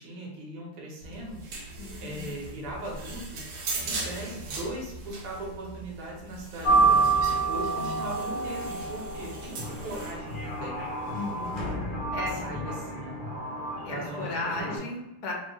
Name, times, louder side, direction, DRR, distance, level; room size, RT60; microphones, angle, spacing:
voice 1, 0.0-1.4 2.0-3.4 3.8-10.9 12.2-13.1 13.8-14.3 14.6-14.8, right 1 dB, 85° right, -2 dB, 1.9 m, -39 dB
sound 1, 1.0-11.7, right 2 dB, 65° right, 1.5 m, -40 dB
voice 2, 1.8-2.3 7.7-8.1 11.1-11.6 12.1-12.5 13.8-15.3, left 2 dB, 65° left, 1 dB, 1.0 m, -35 dB
sound 2, 6.6-14.8, right 3 dB, 40° left, 0.7 m, -28 dB
3.6 x 3.2 x 3.2 m, 0.94 s
omnidirectional pair, 2.4 m